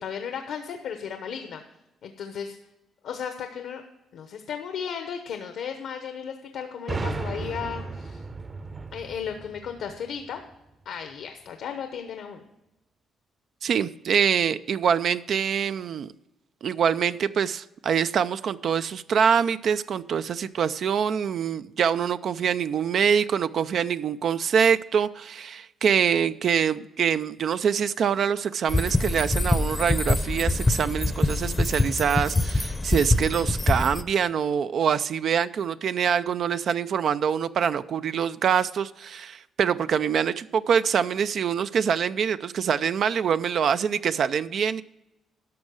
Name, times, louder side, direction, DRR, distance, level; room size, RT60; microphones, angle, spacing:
voice 1, 0.0-1.6 2.0-2.6 3.0-3.8 4.1-8.2 8.9-10.4 10.8-12.4, left 7 dB, 75° left, 1.0 m, -35 dB
sound 1, 6.9-10.5, right 3 dB, 30° right, 0.8 m, -35 dB
voice 2, 13.6-16.1 16.6-44.8, right 7 dB, 60° right, 0.4 m, -25 dB
sound 2, 28.7-34.0, left 2 dB, 20° left, 0.7 m, -24 dB
11.5 x 6.4 x 6.3 m
cardioid pair, 90°, 0 cm